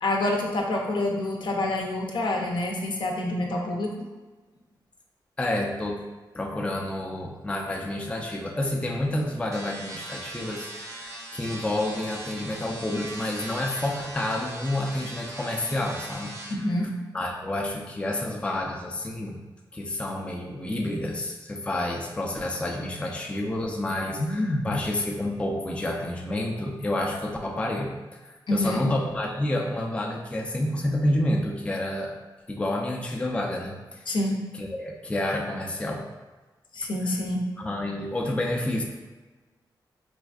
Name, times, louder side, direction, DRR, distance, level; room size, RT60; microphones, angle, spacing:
voice 1, 0.0-4.0 16.5-16.9 24.2-24.8 28.5-28.8 34.1-34.3 36.7-37.5, left 1 dB, 70° left, 0 dB, 0.6 m, -27 dB
voice 2, 5.4-6.0 6.3-16.3 17.1-19.4 19.7-27.9 28.5-32.1 32.5-34.0 34.6-36.1 37.6-38.8, left 1 dB, 15° left, 0 dB, 0.4 m, -29 dB
sound 1, 9.5-16.5, right 1 dB, 35° right, 0.6 m, -40 dB
4.1 x 2.5 x 2.3 m, 1.3 s
wide cardioid pair, 95°, 8 cm